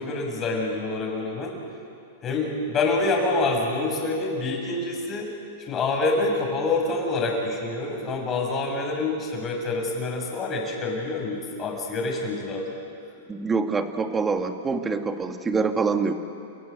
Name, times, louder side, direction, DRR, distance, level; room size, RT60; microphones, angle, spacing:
voice 1, 0.0-1.6 2.2-5.3 5.7-12.7, left 3 dB, 25° left, 0 dB, 6.4 m, -26 dB
voice 2, 13.3-16.1, right 4 dB, 15° right, 7 dB, 1.6 m, -25 dB
30.0 x 17.5 x 8.1 m, 2.5 s
hypercardioid pair, 135°, 0 cm